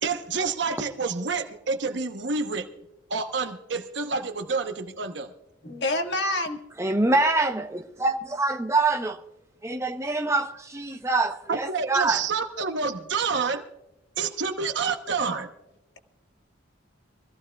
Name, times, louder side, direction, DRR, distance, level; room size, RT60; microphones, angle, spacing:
voice 1, 0.0-2.7 3.1-5.3 11.5-13.6 14.2-15.5, right 4 dB, 65° right, 1.0 m, -28 dB
voice 2, 5.6-6.6, left 1 dB, 60° left, 1.8 m, -27 dB
voice 3, 6.8-9.2 9.6-12.2, right 3 dB, 15° right, 0.9 m, -25 dB
24.0 x 15.0 x 2.3 m
head